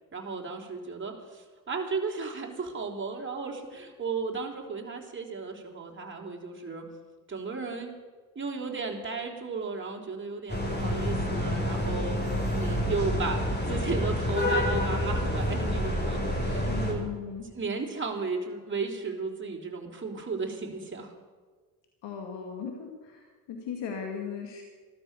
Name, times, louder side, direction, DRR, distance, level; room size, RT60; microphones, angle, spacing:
voice 1, 0.1-6.9 7.3-7.9 8.4-12.2 12.6-17.1 17.5-21.1, right 4 dB, 25° right, 0 dB, 3.6 m, -34 dB
sound 1, 10.5-16.9, left 1 dB, 20° left, 5.4 m, -28 dB
voice 2, 16.6-17.5 22.0-24.6, left 6 dB, 70° left, 2 dB, 2.4 m, -37 dB
15.0 x 13.0 x 6.7 m, 1.5 s
supercardioid pair, 70°, 44 cm